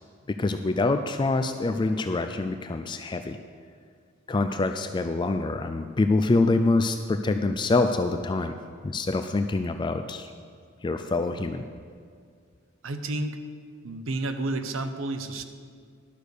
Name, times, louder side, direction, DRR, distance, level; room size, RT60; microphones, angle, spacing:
voice 1, 0.3-3.4 4.3-8.5 8.8-10.3 10.8-11.6, left 3 dB, 25° left, 7 dB, 0.3 m, -25 dB
voice 2, 12.8-13.4 13.8-15.4, right 2 dB, 85° right, 8 dB, 0.8 m, -30 dB
12.0 x 6.4 x 6.7 m, 2.1 s
head